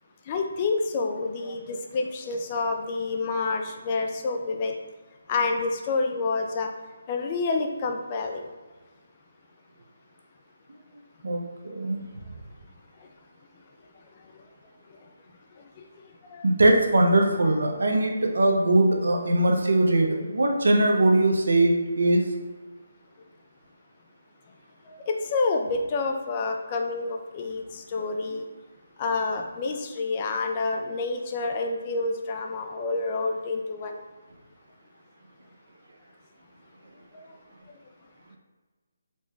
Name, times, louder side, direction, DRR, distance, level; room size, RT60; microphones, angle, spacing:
voice 1, 0.3-4.7 5.3-6.7 7.1-8.5 15.8-15.9 16.3-16.4 24.9-28.4 29.0-34.0 37.1-37.2, left 3 dB, 30° left, 3 dB, 0.4 m, -28 dB
voice 2, 11.7-12.0 16.4-22.2, right 1 dB, 75° right, 2 dB, 0.6 m, -21 dB
4.2 x 2.2 x 3.2 m, 1.3 s
figure-of-eight pair, 155°, 0 cm